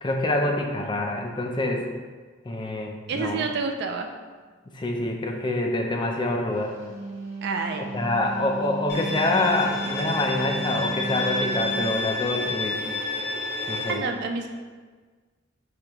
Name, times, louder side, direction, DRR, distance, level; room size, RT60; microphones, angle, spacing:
voice 1, 0.0-1.9 2.5-3.4 4.7-6.7 7.8-12.8 13.7-14.0, left 2 dB, 25° left, 2 dB, 0.4 m, -26 dB
voice 2, 3.1-4.1 7.4-7.9 13.9-14.5, right 4 dB, 55° right, 3 dB, 0.3 m, -28 dB
Wind instrument woodwind instrument, 6.7-12.0, right 3 dB, 80° right, 0.8 m, -35 dB
Bowed string instrument, 8.9-13.9, left 3 dB, 55° left, 0.8 m, -30 dB
4.9 x 3.3 x 3.0 m, 1.4 s
head